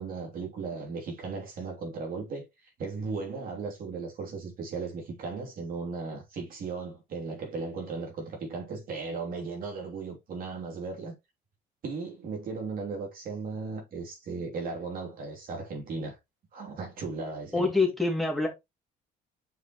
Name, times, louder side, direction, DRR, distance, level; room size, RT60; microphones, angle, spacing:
voice 1, 0.0-2.5 2.8-11.1 11.8-16.1 16.5-17.7, right 4 dB, 55° right, 3.1 m, -36 dB
voice 2, 17.5-18.5, left 3 dB, ahead, 2.5 m, -25 dB
7.9 x 5.0 x 3.1 m
cardioid pair, 110°, 17 cm